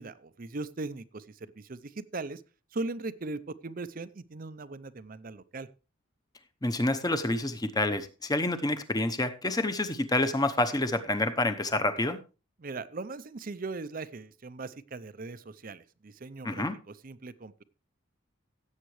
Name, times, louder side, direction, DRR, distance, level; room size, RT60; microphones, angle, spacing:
voice 1, 0.0-2.4 2.7-5.7 12.6-17.6, right 3 dB, 40° right, 15 dB, 0.6 m, -39 dB
voice 2, 6.6-12.2 16.4-16.8, left 2 dB, 20° left, 9 dB, 0.9 m, -28 dB
16.5 x 8.1 x 3.2 m, 0.33 s
head